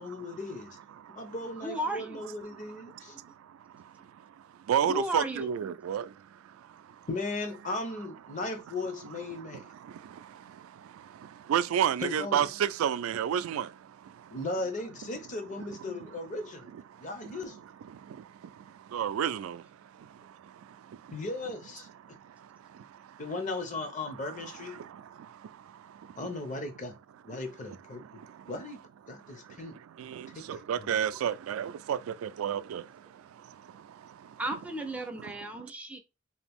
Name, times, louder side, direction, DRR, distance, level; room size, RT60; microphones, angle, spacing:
voice 1, 0.0-0.8 1.1-3.2 7.1-9.7 12.0-12.5 14.3-16.7 17.0-17.6 21.1-21.9 23.2-24.8 26.2-26.9 27.2-28.0 28.5-28.8 29.1-29.8 30.8-31.0, left 2 dB, 35° left, 0.6 m, -37 dB
voice 2, 0.9-1.3 2.5-7.1 8.3-8.4 9.3-14.4 15.6-15.9 16.9-17.4 17.8-21.2 22.0-23.2 24.2-26.3 28.0-28.5 29.2-34.4, right 9 dB, 90° right, 0.3 m, -34 dB
voice 3, 1.6-2.2 3.1-3.2 4.9-5.5 34.4-36.0, right 1 dB, 5° right, 0.3 m, -34 dB
2.8 x 2.4 x 3.4 m
head